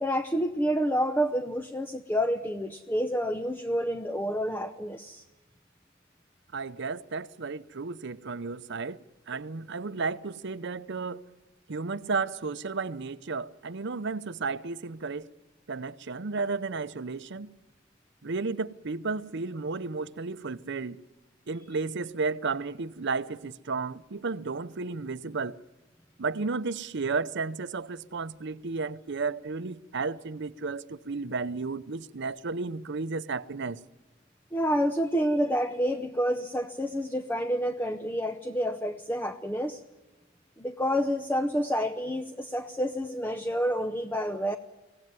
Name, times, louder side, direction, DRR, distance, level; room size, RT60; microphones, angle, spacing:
voice 1, 0.0-5.2 34.5-39.8 40.6-44.6, equal, 10° left, 0.7 m, -28 dB
voice 2, 6.5-9.0 9.3-11.2 11.7-15.3 15.7-17.5 18.2-21.0 21.5-25.6 26.2-33.8, right 4 dB, 60° right, 0.7 m, -33 dB
24.0 x 17.5 x 9.5 m
head